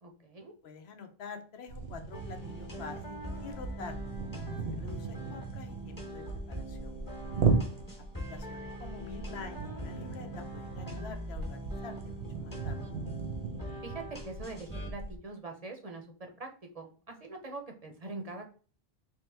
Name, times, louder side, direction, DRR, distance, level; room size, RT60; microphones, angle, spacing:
voice 1, 0.0-0.5 7.4-7.6 13.8-18.5, right 3 dB, 45° right, 4 dB, 0.6 m, -43 dB
voice 2, 0.6-4.1 4.6-7.0 8.3-13.0, left 5 dB, 85° left, 7 dB, 0.9 m, -47 dB
sound 1, 1.7-15.2, right 5 dB, 80° right, 0.9 m, -37 dB
sound 2, 2.1-14.9, equal, 20° left, 1.0 m, -43 dB
3.5 x 3.2 x 3.2 m, 0.39 s
omnidirectional pair, 1.0 m